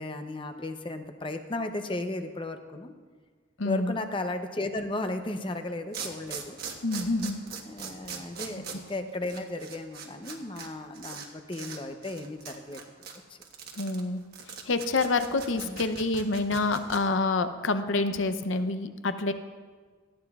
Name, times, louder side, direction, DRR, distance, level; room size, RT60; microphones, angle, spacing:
voice 1, 0.0-2.9 3.6-6.6 7.7-12.8 13.3-13.4 15.5-15.8, left 2 dB, 25° left, 7 dB, 0.7 m, -35 dB
voice 2, 3.6-3.9 6.8-7.4 13.8-14.2 14.7-19.3, left 3 dB, 65° left, 10 dB, 0.7 m, -27 dB
sound 1, 5.4-5.5 5.9-10.7 10.9-11.3 11.5-11.8 12.0-17.0, right 6 dB, 45° right, 1.3 m, -40 dB
19.0 x 14.0 x 2.4 m, 1.5 s
head